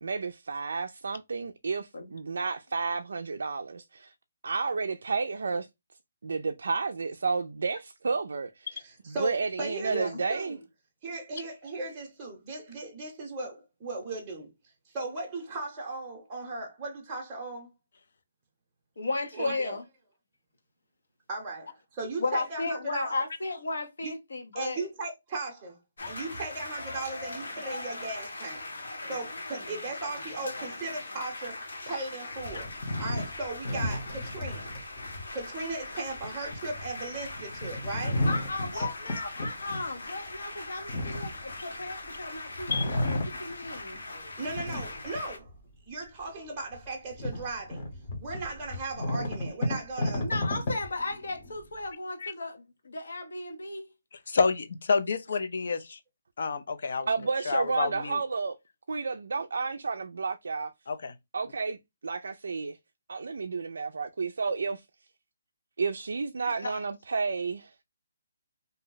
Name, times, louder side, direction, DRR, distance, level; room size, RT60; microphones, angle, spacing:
voice 1, 0.0-4.1 4.4-5.7 6.2-8.8 9.1-10.6 57.1-58.6 58.9-60.7 61.3-62.8 63.1-64.9 65.8-67.8, right 4 dB, 70° right, 0.3 m, -31 dB
voice 2, 8.8-10.6 11.0-14.5 14.9-17.7 19.3-19.8 21.3-23.1 24.0-24.1 24.5-25.8 26.1-28.6 29.1-34.7 35.3-38.3 38.7-38.9 44.4-45.5 45.9-47.9 48.2-50.3, right 3 dB, 15° right, 0.8 m, -37 dB
voice 3, 9.9-10.2 19.0-19.8 22.2-24.9 38.3-44.0 50.2-53.9 66.6-66.8, left 2 dB, 70° left, 0.9 m, -35 dB
sound 1, 26.0-45.4, left 2 dB, 85° left, 1.4 m, -41 dB
sound 2, 32.3-42.2 42.5-44.0 44.4-45.7 46.2-46.3 46.7-51.8, left 1 dB, 30° left, 0.8 m, -34 dB
voice 4, 54.3-56.0 56.4-57.1 57.5-58.2 60.9-61.1, left 4 dB, 55° left, 0.5 m, -29 dB
2.6 x 2.1 x 3.8 m
hypercardioid pair, 175°, 0 cm